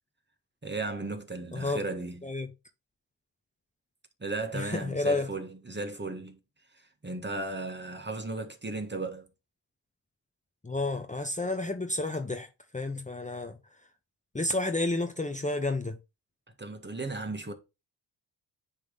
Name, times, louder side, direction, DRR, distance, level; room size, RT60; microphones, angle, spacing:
voice 1, 0.6-2.2 4.2-6.4 6.7-9.3 16.6-17.5, right 3 dB, 25° right, 1.6 m, -35 dB
voice 2, 4.5-5.3 10.6-12.5 12.7-13.6 14.3-16.0, left 2 dB, 15° left, 1.0 m, -30 dB
9.6 x 3.4 x 4.0 m
cardioid pair, 60°, 43 cm